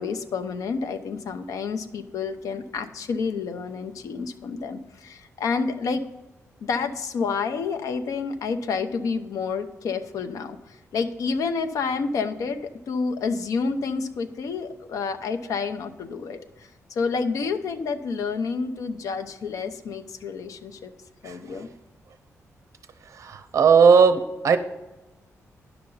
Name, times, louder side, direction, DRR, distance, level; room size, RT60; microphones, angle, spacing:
voice 1, 0.0-6.0 6.6-20.9 21.2-21.7, left 5 dB, 85° left, 9 dB, 0.8 m, -29 dB
voice 2, 23.2-24.6, right 6 dB, 65° right, 10 dB, 0.7 m, -17 dB
10.0 x 6.9 x 3.9 m, 1.1 s
wide cardioid pair, 130°, 6 cm